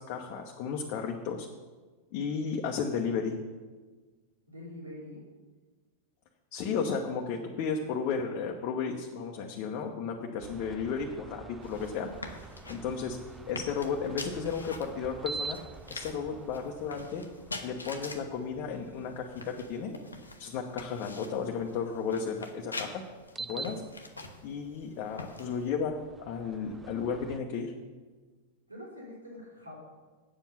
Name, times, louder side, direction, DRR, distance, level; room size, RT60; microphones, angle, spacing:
voice 1, 0.0-1.5 2.1-3.4 6.5-12.1 12.7-13.2 13.5-15.6 15.9-17.2 17.6-20.0 20.4-23.0 23.4-23.8 24.4-26.0 26.2-27.7, left 6 dB, 45° left, 1 dB, 0.9 m, -33 dB
voice 2, 4.5-5.2 28.7-29.8, left 1 dB, 90° right, -4 dB, 3.5 m, -45 dB
sound 1, 10.4-21.8 23.2-27.4, right 4 dB, 15° right, 0.5 m, -47 dB
sound 2, 11.6-25.7, left 2 dB, 85° left, 0.9 m, -45 dB
8.9 x 7.4 x 5.7 m, 1.4 s
figure-of-eight pair, 95°, 0 cm